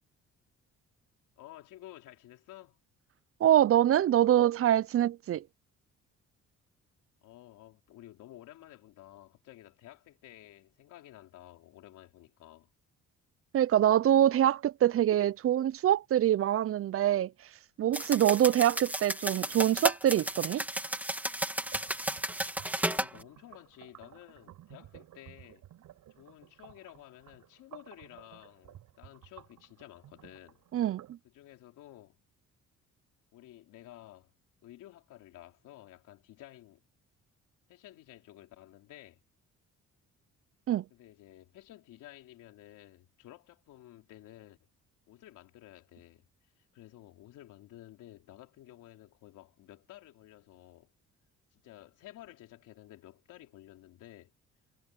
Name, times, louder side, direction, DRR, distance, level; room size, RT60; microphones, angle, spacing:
voice 1, 1.4-2.8 7.2-12.7 22.8-25.7 26.1-30.6 31.2-32.2 33.3-34.3 34.6-36.8 37.7-39.2 40.9-44.6 45.1-46.3 46.6-50.9 51.5-54.3, left 14 dB, 90° left, 3.9 m, -53 dB
voice 2, 3.4-5.4 13.5-17.3 17.8-20.6 30.7-31.2 40.7-40.8, right 11 dB, 50° right, 0.5 m, -25 dB
sound 1, 17.9-23.1, right 1 dB, 5° right, 2.3 m, -33 dB
sound 2, 21.6-31.2, right 13 dB, 80° right, 6.0 m, -54 dB
cardioid pair, 90°, 30 cm